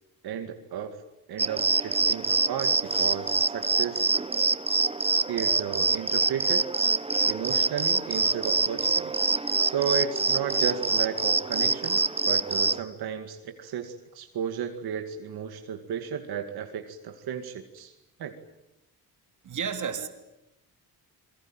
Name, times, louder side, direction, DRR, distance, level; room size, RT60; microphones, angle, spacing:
voice 1, 0.2-1.0 1.3-4.1 5.3-6.6 7.3-9.2 9.6-12.0 12.3-17.9 18.2-18.3, right 8 dB, 75° right, 2.4 m, -33 dB
sound 1, 1.4-12.8, right 3 dB, 15° right, 0.9 m, -25 dB
voice 2, 19.4-20.1, right 7 dB, 50° right, 3.2 m, -31 dB
28.5 x 23.0 x 9.2 m
cardioid pair, 145°, 38 cm